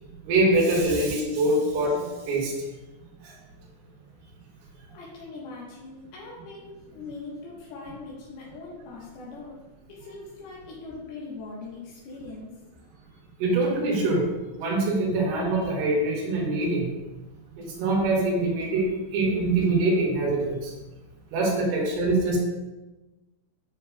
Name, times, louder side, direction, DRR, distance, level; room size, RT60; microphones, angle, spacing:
voice 1, 0.3-2.5 3.2-3.3 13.4-14.3 14.6-16.9 17.6-18.9 19.1-20.7 21.3-22.4, right 2 dB, 90° right, -3 dB, 3.6 m, -24 dB
voice 2, 4.9-9.6 9.9-12.5 21.7-21.8, left 3 dB, 90° left, -6 dB, 3.3 m, -41 dB
9.3 x 7.0 x 2.3 m, 1.1 s
omnidirectional pair, 4.3 m